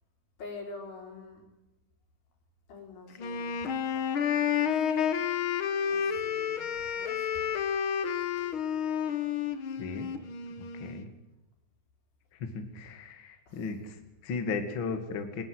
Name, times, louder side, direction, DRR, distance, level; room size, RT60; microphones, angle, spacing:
voice 1, 0.4-1.4 2.7-3.7 4.0-4.1 4.6-4.7 5.9-7.5 8.0-8.6 13.5-13.7, left 3 dB, 80° left, 1 dB, 6.7 m, -46 dB
Wind instrument woodwind instrument, 3.2-11.0, left 8 dB, 60° left, 1.3 m, -30 dB
voice 2, 9.8-10.1 10.7-11.1 12.3-15.4, left 4 dB, 40° left, 6 dB, 2.6 m, -36 dB
20.5 x 20.5 x 8.0 m, 0.97 s
omnidirectional pair, 4.2 m